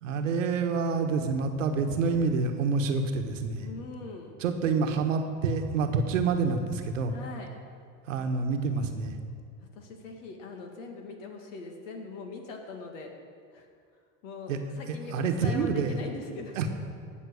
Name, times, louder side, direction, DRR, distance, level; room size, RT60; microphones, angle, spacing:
voice 1, 0.0-3.7 4.4-7.1 8.1-9.1 14.5-14.6 14.9-15.9 16.6-16.7, right 4 dB, 90° right, 6 dB, 1.3 m, -27 dB
voice 2, 3.6-4.4 7.1-7.5 9.7-13.1 13.5-13.7 14.2-16.6, left 3 dB, 80° left, 3 dB, 2.1 m, -41 dB
17.5 x 6.2 x 6.3 m, 2.2 s
hypercardioid pair, 85°, 37 cm